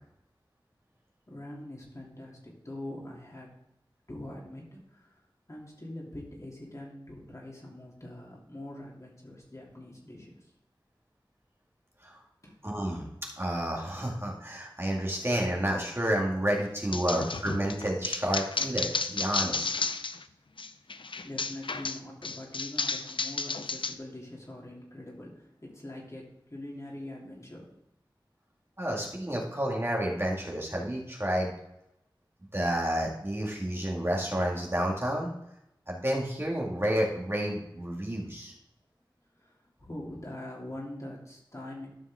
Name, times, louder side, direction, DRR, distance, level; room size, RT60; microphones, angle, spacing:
voice 1, 1.3-3.5 4.1-10.5 12.4-12.6 19.4-20.1 21.2-27.7 39.3-41.9, left 1 dB, 40° left, -3 dB, 2.9 m, -43 dB
voice 2, 12.6-13.1 13.4-19.7 28.8-31.5 32.5-35.3 35.9-38.5, equal, 30° right, -3 dB, 2.2 m, -30 dB
sound 1, 16.9-20.2 20.6-23.9, left 4 dB, 75° left, 0.5 m, -32 dB
13.0 x 5.4 x 3.6 m, 0.81 s
wide cardioid pair, 45°, 9 cm